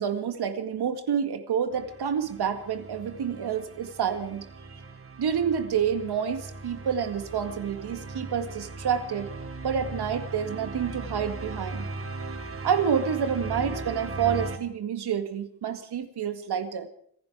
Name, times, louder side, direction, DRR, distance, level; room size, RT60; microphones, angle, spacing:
voice 1, 0.0-4.8 5.2-9.3 9.6-11.9 12.6-16.9, right 7 dB, 85° right, 9 dB, 2.0 m, -28 dB
sound 1, 1.7-14.6, right 3 dB, 35° right, 1.8 m, -38 dB
27.0 x 10.5 x 4.9 m, 0.65 s
wide cardioid pair, 105°, 39 cm